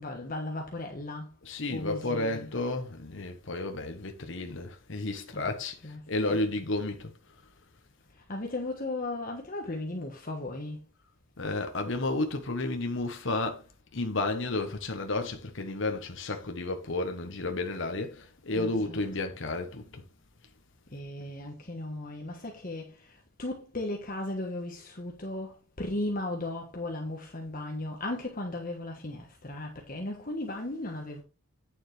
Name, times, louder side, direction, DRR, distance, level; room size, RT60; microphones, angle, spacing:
voice 1, 0.0-1.3 1.7-2.5 5.3-5.5 5.8-6.4 8.1-10.9 18.5-19.0 20.9-31.2, left 2 dB, 40° left, 1.4 m, -36 dB
voice 2, 1.4-7.1 11.4-13.6 13.9-20.0, left 2 dB, 60° left, 1.1 m, -32 dB
9.2 x 7.2 x 3.4 m
head